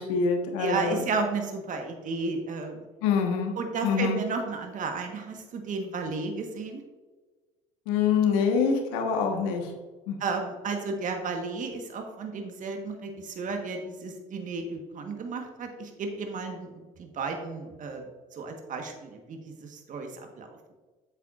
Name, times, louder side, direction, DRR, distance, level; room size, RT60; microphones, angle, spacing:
voice 1, 0.0-1.0 3.0-3.5 3.8-4.2 7.9-9.7 10.1-10.2, left 6 dB, 80° left, 3 dB, 1.4 m, -25 dB
voice 2, 0.6-2.8 3.6-6.8 10.2-18.0 18.4-20.5, right 4 dB, 50° right, 4 dB, 1.4 m, -33 dB
8.1 x 8.0 x 2.5 m, 1.3 s
hypercardioid pair, 65°, 17 cm